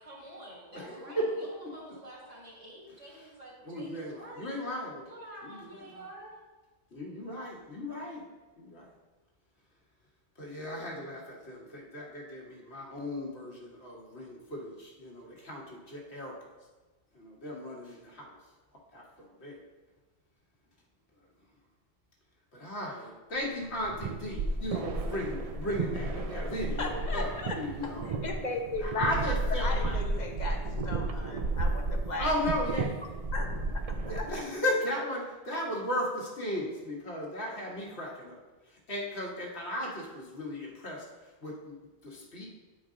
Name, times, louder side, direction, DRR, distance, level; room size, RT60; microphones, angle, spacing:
voice 1, 0.0-4.5 5.0-6.4, right 1 dB, 30° right, -5 dB, 2.3 m, -48 dB
voice 2, 0.7-1.7 3.6-5.1 5.4-6.0 6.9-8.2 8.6-8.9 10.4-16.3 17.1-18.4 18.9-19.6 22.5-28.2 28.8-29.9 32.2-32.9 34.0-38.4 38.9-41.0 41.4-41.7 42.0-42.5, left 1 dB, 65° left, -2 dB, 1.7 m, -36 dB
sound 1, 23.6-34.4, right 2 dB, 60° right, 0.3 m, -33 dB
voice 3, 26.8-29.2 29.6-32.4 33.3-34.3, left 3 dB, 45° left, 3 dB, 0.8 m, -37 dB
9.4 x 4.7 x 3.7 m, 1.2 s
omnidirectional pair, 1.2 m